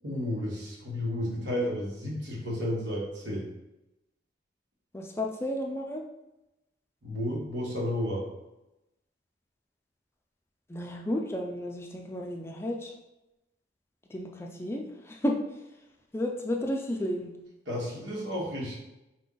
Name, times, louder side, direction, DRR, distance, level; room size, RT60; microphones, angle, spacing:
voice 1, 0.0-3.5 7.0-8.3 17.7-18.8, left 1 dB, 85° right, -4 dB, 1.3 m, -32 dB
voice 2, 4.9-6.0 10.7-12.9 14.1-15.4 16.1-17.3, left 1 dB, 15° left, 1 dB, 0.4 m, -32 dB
4.2 x 2.5 x 3.8 m, 0.94 s
head